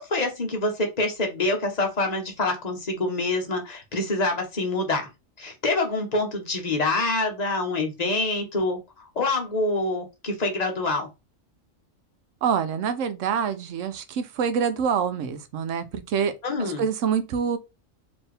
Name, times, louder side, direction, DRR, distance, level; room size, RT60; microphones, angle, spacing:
voice 1, 0.0-5.1 5.4-11.1 16.4-16.8, left 2 dB, 35° left, 1.1 m, -26 dB
voice 2, 12.4-16.3 16.6-17.6, right 7 dB, 75° right, 1.0 m, -26 dB
4.4 x 3.0 x 3.3 m
omnidirectional pair, 1.3 m